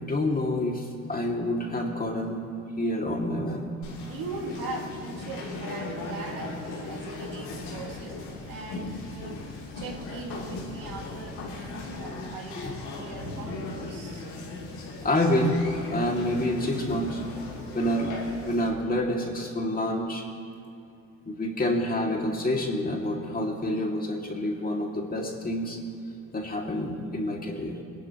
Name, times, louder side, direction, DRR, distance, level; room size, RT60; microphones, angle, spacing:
voice 1, 0.0-2.4 2.8-3.8 12.6-12.7 15.0-15.6 15.9-17.2 17.7-18.2 18.4-20.3 21.3-25.8 26.3-27.8, left 1 dB, 25° left, 0 dB, 2.4 m, -28 dB
Conversation, 3.8-18.7, left 2 dB, 80° left, 3.2 m, -37 dB
voice 2, 4.1-8.2 8.5-9.4 9.8-14.3, right 3 dB, 65° right, -1 dB, 2.3 m, -40 dB
22.0 x 12.0 x 3.0 m, 2.6 s
supercardioid pair, 65°, 36 cm